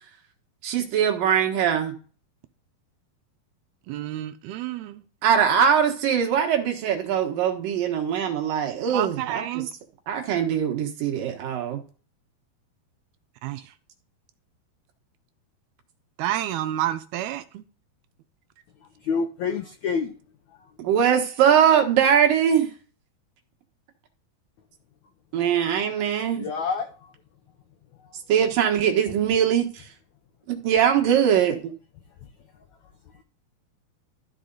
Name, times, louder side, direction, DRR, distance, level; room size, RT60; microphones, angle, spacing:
voice 1, 0.6-1.9 5.2-9.4 10.1-11.8 20.8-22.7 25.3-26.5 28.3-29.6 30.5-31.7, right 8 dB, 65° right, 2.8 m, -21 dB
voice 2, 3.9-5.0 8.9-9.7 13.4-13.7 16.2-17.6, right 13 dB, 80° right, 2.5 m, -29 dB
voice 3, 19.0-20.1 26.3-27.1, left 5 dB, 85° left, 1.6 m, -27 dB
13.5 x 4.9 x 3.9 m
omnidirectional pair, 4.6 m